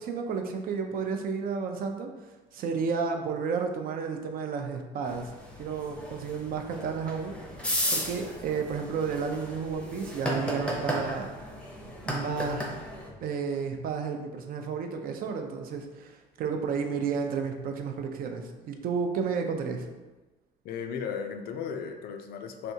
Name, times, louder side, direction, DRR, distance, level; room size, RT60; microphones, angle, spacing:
voice 1, 0.0-2.1 2.5-5.3 5.6-11.3 12.0-12.6 13.2-19.9, right 5 dB, 60° right, 4 dB, 0.5 m, -32 dB
sound 1, 5.1-13.1, equal, 5° left, 0.6 m, -35 dB
voice 2, 20.6-22.7, left 6 dB, 65° left, 6 dB, 0.4 m, -35 dB
3.3 x 2.7 x 2.7 m, 1.2 s
cardioid pair, 110°, 17 cm